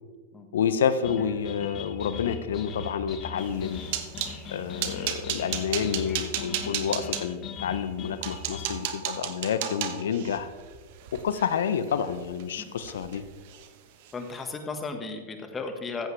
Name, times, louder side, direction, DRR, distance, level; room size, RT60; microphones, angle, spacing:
voice 1, 0.5-3.8 4.5-10.5 11.1-13.2, left 7 dB, 80° left, 13 dB, 0.8 m, -29 dB
sound 1, 1.0-8.7, left 5 dB, 35° left, 1.5 m, -39 dB
sound 2, 3.5-4.4 4.8-7.2 7.8-7.9 8.2-12.4 12.8-13.2 13.5-13.7 14.1-14.2, right 10 dB, 60° right, 1.1 m, -34 dB
voice 2, 14.1-16.1, left 4 dB, 20° left, 6 dB, 1.6 m, -35 dB
14.5 x 8.0 x 3.4 m, 1.4 s
hypercardioid pair, 110°, 0 cm